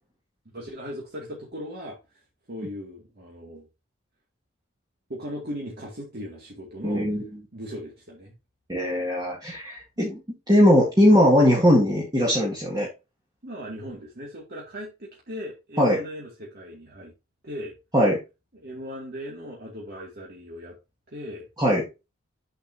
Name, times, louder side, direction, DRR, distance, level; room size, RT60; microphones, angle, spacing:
voice 1, 0.5-2.2 2.5-3.7 5.1-7.1 7.5-8.3 13.4-17.1 17.4-17.7 18.6-20.8 21.1-21.5, equal, 50° right, -3 dB, 2.3 m, -38 dB
voice 2, 6.8-7.2 8.7-10.2 10.5-12.9 15.8-16.0 17.9-18.2 21.6-21.9, equal, 20° right, -4 dB, 1.9 m, -20 dB
8.0 x 6.6 x 2.7 m, 0.26 s
head